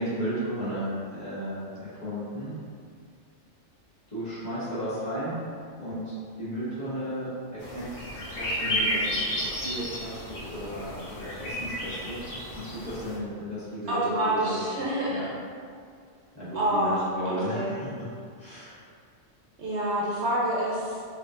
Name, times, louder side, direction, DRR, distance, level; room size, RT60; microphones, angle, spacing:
voice 1, 0.0-2.6 4.1-5.4 5.8-7.9 8.3-12.3 12.5-15.3 16.3-18.1 18.4-18.8, equal, 35° left, -13 dB, 1.7 m, -34 dB
sound 1, 7.6-13.2, equal, 65° left, 1.0 m, -32 dB
voice 2, 13.9-15.3 16.5-17.8 19.6-21.0, right 1 dB, 70° right, -6 dB, 0.9 m, -27 dB
5.2 x 3.0 x 2.5 m, 2.2 s
omnidirectional pair, 1.2 m